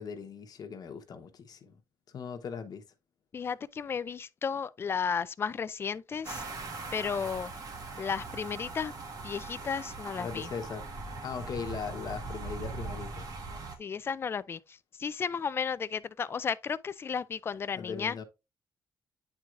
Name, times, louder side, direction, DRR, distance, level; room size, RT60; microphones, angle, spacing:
voice 1, 0.0-1.8 2.1-2.8 10.2-10.9 11.2-13.3 17.8-18.2, left 6 dB, 55° left, 1.0 m, -39 dB
voice 2, 3.3-6.4 6.9-7.5 8.0-8.9 9.2-10.5 13.8-18.2, left 6 dB, 30° left, 0.3 m, -34 dB
sound 1, 6.2-13.8, right 3 dB, 50° right, 1.5 m, -40 dB
9.5 x 4.6 x 2.5 m
cardioid pair, 155°, 8 cm